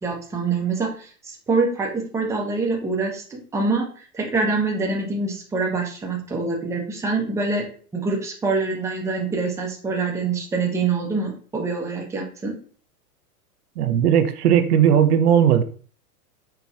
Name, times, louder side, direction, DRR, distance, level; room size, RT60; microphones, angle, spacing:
voice 1, 0.0-7.7 7.9-12.6, right 3 dB, 5° right, 0.6 m, -25 dB
voice 2, 13.8-15.6, right 9 dB, 75° right, 0.6 m, -17 dB
4.3 x 2.9 x 2.4 m
hypercardioid pair, 105°, 47 cm